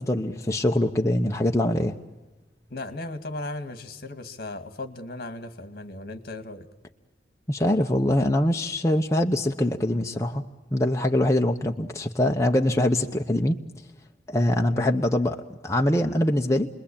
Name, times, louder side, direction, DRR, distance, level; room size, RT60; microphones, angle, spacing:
voice 1, 0.0-1.9 7.5-10.4 10.7-13.6 14.3-16.7, left 1 dB, 15° left, 2 dB, 0.9 m, -23 dB
voice 2, 2.7-6.7 14.7-14.9, left 2 dB, 60° left, 9 dB, 2.0 m, -36 dB
29.5 x 21.5 x 8.7 m, 1.2 s
head